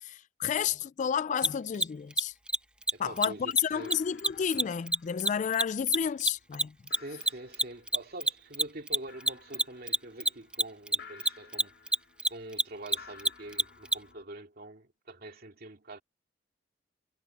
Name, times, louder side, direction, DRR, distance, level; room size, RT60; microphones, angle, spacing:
voice 1, 0.0-2.3 3.0-6.7, left 8 dB, 40° left, 0.3 m, -31 dB
sound 1, 1.0-1.2 1.4-2.0 2.3-2.9 3.2-3.3 3.6-14.2, left 5 dB, 70° left, 4.2 m, -56 dB
Mechanisms, 1.4-1.5 1.7-1.9 2.1-2.2 2.5-2.6 2.8-2.9 3.2-3.3 3.5-3.6 3.9-6.6 6.9-14.0, right 2 dB, 5° right, 0.6 m, -26 dB
voice 2, 2.9-4.0 6.9-12.0 12.3-16.0, right 1 dB, 55° right, 2.4 m, -45 dB
head